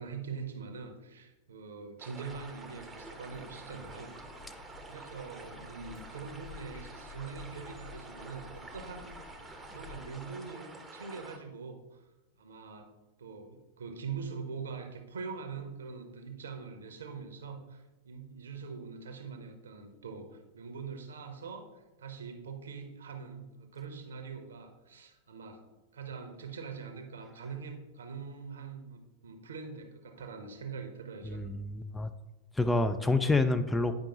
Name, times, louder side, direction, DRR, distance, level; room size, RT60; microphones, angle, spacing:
voice 1, 0.0-4.5 4.8-9.2 9.7-12.1 12.4-12.9 13.2-25.6 25.9-31.5, right 5 dB, 65° right, 5 dB, 0.9 m, -43 dB
sound 1, 2.0-11.4, right 2 dB, 10° right, 0.8 m, -49 dB
sound 2, 2.2-10.0, left 4 dB, 65° left, 2.5 m, -52 dB
voice 2, 31.3-32.1 32.6-33.9, left 2 dB, 10° left, 9 dB, 0.3 m, -28 dB
8.8 x 5.1 x 2.9 m, 1.1 s
figure-of-eight pair, 90°, 0 cm